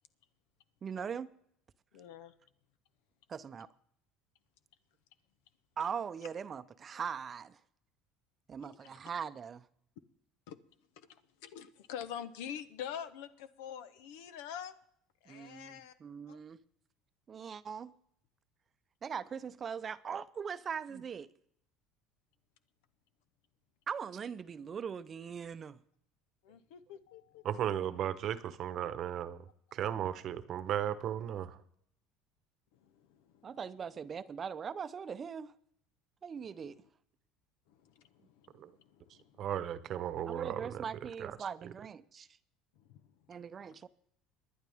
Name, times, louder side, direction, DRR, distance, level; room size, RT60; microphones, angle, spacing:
voice 1, 0.8-1.3 3.3-3.7 5.8-7.6 8.5-9.7 15.3-16.6 17.3-17.9 19.0-21.3 23.9-25.8 33.4-35.5 36.2-36.8 40.3-42.3 43.3-43.9, right 7 dB, 35° right, 0.6 m, -41 dB
voice 2, 1.9-2.3 8.6-9.0 10.5-10.6 10.9-14.7 15.2-16.0 16.3-16.4 26.4-27.5 29.9-30.2 32.7-33.6 36.4-36.9 37.7-39.5 40.3-40.4 42.7-43.7, left 9 dB, 85° left, 0.9 m, -47 dB
voice 3, 27.4-29.4 29.7-31.6 38.5-38.7 39.4-41.4, right 10 dB, 50° right, 0.9 m, -36 dB
25.0 x 10.5 x 3.5 m
supercardioid pair, 110°, 0 cm